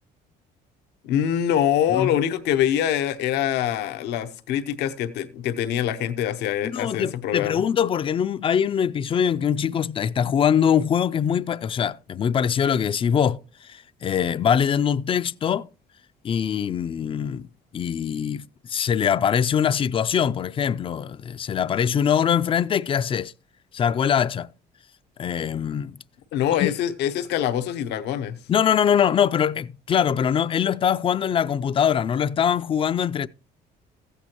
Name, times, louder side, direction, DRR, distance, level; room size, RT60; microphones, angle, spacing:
voice 1, 1.0-7.6 26.3-28.4, left 10 dB, 85° left, 0.8 m, -24 dB
voice 2, 6.6-15.7 16.2-17.5 17.7-23.3 23.7-24.5 25.2-26.0 26.6-26.7 28.5-33.3, left 8 dB, 30° left, 0.4 m, -23 dB
15.0 x 8.2 x 2.9 m
cardioid pair, 110°, 17 cm